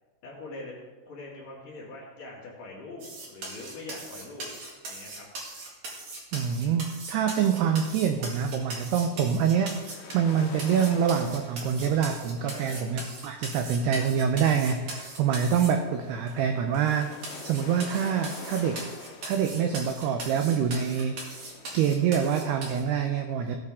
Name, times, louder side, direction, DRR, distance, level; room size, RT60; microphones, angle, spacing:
voice 1, 0.2-0.8 1.0-4.5 4.9-5.2 12.4-12.8, left 2 dB, 50° left, -5 dB, 3.3 m, -42 dB
sound 1, 3.0-10.3 10.6-15.7 16.3-16.4 16.7-16.8 17.2-22.8, right 2 dB, 50° right, 2.4 m, -40 dB
voice 2, 6.3-9.8 10.1-17.1 17.4-18.8 19.2-21.1 21.7-23.6, right 7 dB, 85° right, 5 dB, 2.3 m, -26 dB
sound 2, 9.6-22.5, left 6 dB, 75° left, 3.1 m, -47 dB
16.5 x 8.4 x 3.6 m, 1.3 s
omnidirectional pair, 5.5 m